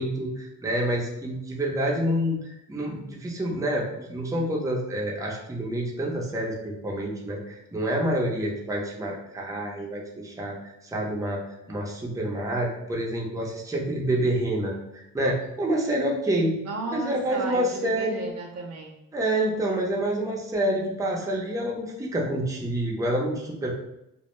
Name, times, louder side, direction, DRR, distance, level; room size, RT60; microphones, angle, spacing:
voice 1, 0.0-2.4 2.7-11.4 11.7-16.6 16.9-18.2 19.1-23.7, right 1 dB, 10° right, -2 dB, 0.6 m, -28 dB
voice 2, 16.6-19.0, right 3 dB, 55° right, 1 dB, 0.5 m, -34 dB
2.1 x 2.0 x 3.0 m, 0.83 s
cardioid pair, 90°, 30 cm